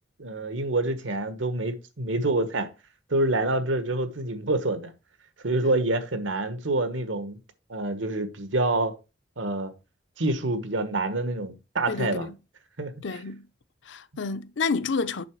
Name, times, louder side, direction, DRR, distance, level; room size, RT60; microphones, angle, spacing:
voice 1, 0.2-2.7 3.1-4.9 5.4-7.4 7.7-9.0 9.4-9.7 10.2-12.3 12.8-13.2, right 2 dB, 85° right, 1.3 m, -27 dB
voice 2, 11.9-12.3 13.0-13.5 13.9-15.2, left 4 dB, 70° left, 0.6 m, -29 dB
6.9 x 5.7 x 4.7 m
head